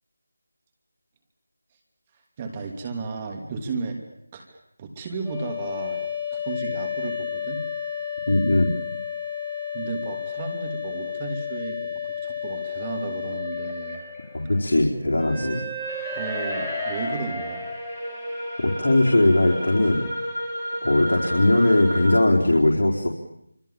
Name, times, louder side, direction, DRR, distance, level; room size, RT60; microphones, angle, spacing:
voice 1, 2.4-4.0 4.3-6.0 6.3-7.6 9.7-14.0 16.1-17.7, right 4 dB, 20° right, 3 dB, 2.9 m, -33 dB
sound 1, 5.2-22.2, left 3 dB, ahead, 5.9 m, -31 dB
voice 2, 8.3-8.7 14.3-15.6 18.6-20.1 20.8-23.1, left 1 dB, 60° left, -2 dB, 4.5 m, -20 dB
30.0 x 26.0 x 7.4 m, 0.78 s
figure-of-eight pair, 165°, 0 cm